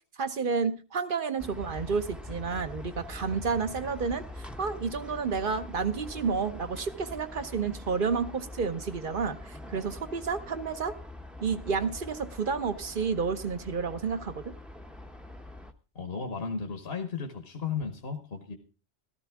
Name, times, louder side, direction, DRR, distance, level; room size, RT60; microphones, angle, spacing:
voice 1, 0.2-10.9 11.4-14.5, right 5 dB, 55° right, 10 dB, 1.1 m, -30 dB
sound 1, 1.4-15.7, left 1 dB, ahead, 0.7 m, -44 dB
voice 2, 15.9-18.6, left 5 dB, 65° left, 5 dB, 1.4 m, -34 dB
14.0 x 13.0 x 3.5 m, 0.34 s
omnidirectional pair, 1.1 m